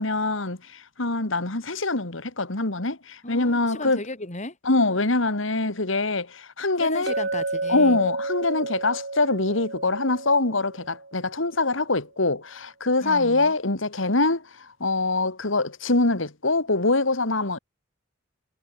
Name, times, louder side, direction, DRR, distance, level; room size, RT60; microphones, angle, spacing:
voice 1, 0.0-4.0 4.6-7.1 7.7-17.6, left 2 dB, 70° left, 2.4 m, -24 dB
voice 2, 3.2-4.6 6.8-8.0 13.0-13.5, left 2 dB, 35° left, 4.8 m, -35 dB
Chink clink, 7.1-11.2, right 3 dB, 60° right, 5.4 m, -31 dB
head